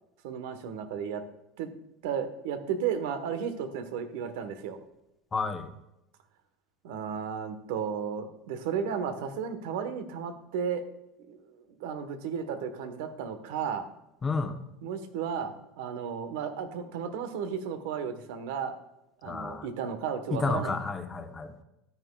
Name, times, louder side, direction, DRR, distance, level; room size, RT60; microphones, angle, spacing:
voice 1, 0.2-1.2 1.6-1.7 2.0-4.8 6.8-10.9 11.3-11.4 11.8-13.9 14.8-18.7 19.2-20.8, right 7 dB, 80° right, 9 dB, 1.3 m, -34 dB
voice 2, 5.3-5.7 14.2-14.6 19.2-19.7 20.3-21.6, left 4 dB, 20° left, 7 dB, 1.0 m, -31 dB
13.5 x 9.9 x 2.4 m, 0.89 s
supercardioid pair, 135°, 0 cm